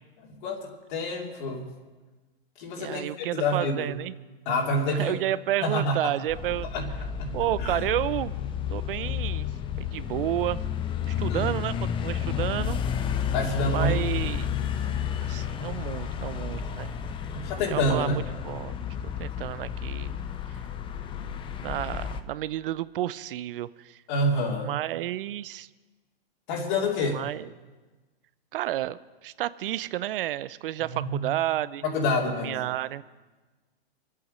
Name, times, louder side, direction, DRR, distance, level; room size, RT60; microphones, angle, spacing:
voice 1, 0.4-1.7 2.6-3.9 4.4-5.2 5.6-6.1 6.7-6.9 7.2-7.3 7.6-7.9 11.3-11.5 13.3-14.0 17.3-18.2 24.1-24.7 26.5-27.2 30.8-31.3 31.8-32.6, left 1 dB, 50° left, -1 dB, 2.7 m, -27 dB
voice 2, 2.8-4.1 4.9-6.7 7.3-8.3 8.7-9.5 9.8-10.6 11.1-12.8 13.7-14.5 15.2-16.9 17.5-18.8 19.2-20.2 21.6-24.0 24.6-25.7 27.1-27.5 28.5-31.8 32.4-33.0, right 14 dB, 60° right, 17 dB, 0.6 m, -31 dB
sound 1, 6.3-22.2, left 8 dB, 15° left, 0.6 m, -31 dB
25.0 x 8.6 x 5.2 m, 1.3 s
hypercardioid pair, 130°, 30 cm